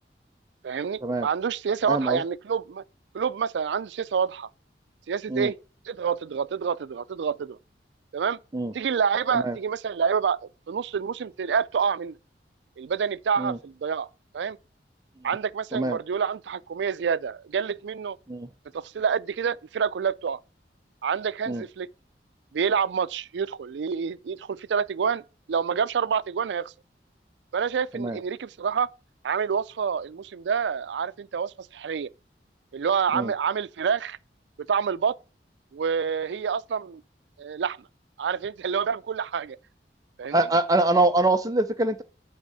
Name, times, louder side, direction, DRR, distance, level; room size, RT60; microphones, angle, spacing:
voice 1, 0.6-2.8 3.1-4.5 5.1-5.6 5.9-7.6 8.1-8.4 8.7-10.4 10.7-12.2 12.8-14.1 14.3-14.6 15.2-18.2 18.7-20.4 21.0-21.9 22.5-25.2 25.5-26.7 27.5-28.9 29.2-32.1 32.7-34.2 34.7-35.2 35.7-37.0 37.4-37.8 38.2-39.6 40.2-40.5, right 6 dB, 90° right, 0.4 m, -27 dB
voice 2, 1.8-2.2 5.3-5.5 8.5-8.7 9.3-9.6 13.4-13.6 15.7-16.0 18.3-18.5 21.5-21.6 27.9-28.2 33.1-33.3 40.3-42.0, right 2 dB, 20° right, 0.4 m, -24 dB
9.4 x 3.6 x 6.4 m
head